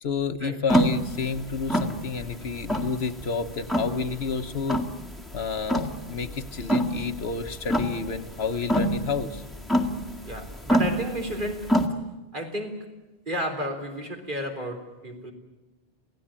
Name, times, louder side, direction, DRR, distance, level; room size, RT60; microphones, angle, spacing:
voice 1, 0.0-4.8 5.3-9.4, left 5 dB, 80° left, 9 dB, 1.4 m, -30 dB
sound 1, 0.7-11.9, equal, ahead, 1.9 m, -27 dB
voice 2, 10.3-11.8 12.3-12.9 13.3-15.3, equal, 50° right, 3 dB, 3.9 m, -32 dB
27.5 x 17.0 x 8.9 m, 1.1 s
omnidirectional pair, 1.1 m